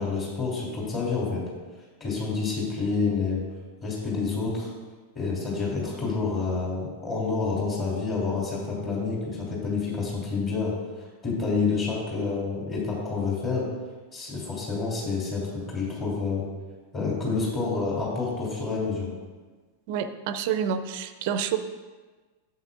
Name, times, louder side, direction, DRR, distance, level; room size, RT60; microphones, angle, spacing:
voice 1, 0.0-1.4 2.0-3.4 3.8-4.7 5.1-10.7 11.2-13.6 14.1-15.4 15.7-16.4 16.9-19.1, left 4 dB, 25° left, -5 dB, 2.8 m, -28 dB
voice 2, 19.9-21.6, right 8 dB, 50° right, 11 dB, 0.5 m, -28 dB
11.5 x 7.8 x 2.5 m, 1.3 s
figure-of-eight pair, 90°, 0 cm